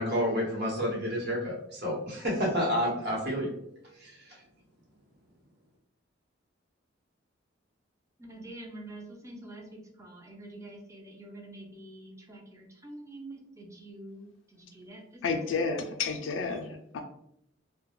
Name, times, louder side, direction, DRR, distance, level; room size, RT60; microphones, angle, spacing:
voice 1, 0.0-3.5 4.0-4.2, equal, 55° right, -3 dB, 1.0 m, -29 dB
voice 2, 8.2-15.7, right 1 dB, 15° right, 1 dB, 0.5 m, -46 dB
voice 3, 15.2-17.0, left 4 dB, 70° left, 3 dB, 0.3 m, -31 dB
2.3 x 2.1 x 3.0 m, 0.73 s
head